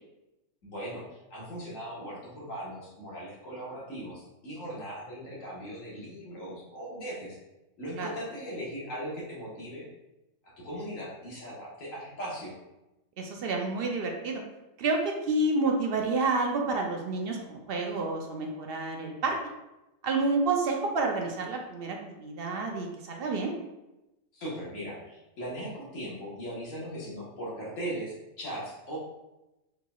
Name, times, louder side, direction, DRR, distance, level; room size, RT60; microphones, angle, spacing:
voice 1, 0.6-7.4 7.8-9.8 10.4-12.5 24.3-29.0, equal, 65° left, -5 dB, 1.6 m, -39 dB
voice 2, 13.2-14.4 14.8-19.3 20.0-23.5, right 3 dB, 60° right, 1 dB, 0.6 m, -29 dB
4.4 x 3.9 x 2.3 m, 0.97 s
omnidirectional pair, 1.5 m